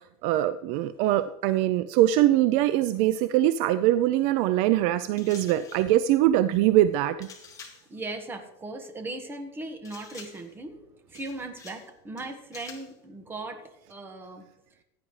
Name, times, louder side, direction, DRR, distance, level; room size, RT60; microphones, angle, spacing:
voice 1, 0.2-7.3, right 13 dB, 50° right, 13 dB, 0.4 m, -22 dB
sound 1, 5.2-5.9 7.2-7.9 9.8-10.5 11.1-11.9 12.2-12.9, left 5 dB, 25° left, 1.9 m, -48 dB
voice 2, 7.9-10.8 11.1-13.6 13.9-14.4, right 2 dB, 15° right, 6 dB, 1.4 m, -38 dB
16.0 x 9.4 x 3.2 m, 0.87 s
supercardioid pair, 145°, 15 cm